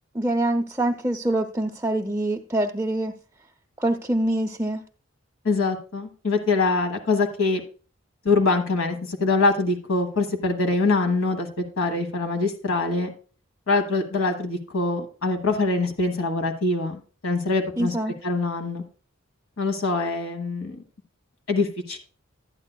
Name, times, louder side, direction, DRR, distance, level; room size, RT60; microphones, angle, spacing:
voice 1, 0.1-3.1 3.8-4.8 17.8-18.1, right 1 dB, 10° right, 1 dB, 0.5 m, -25 dB
voice 2, 5.4-7.6 8.2-11.5 11.8-13.1 13.7-17.9 18.2-18.8 19.6-20.8 21.5-22.0, left 3 dB, 85° left, 5 dB, 1.2 m, -24 dB
12.5 x 9.0 x 2.2 m, 0.38 s
head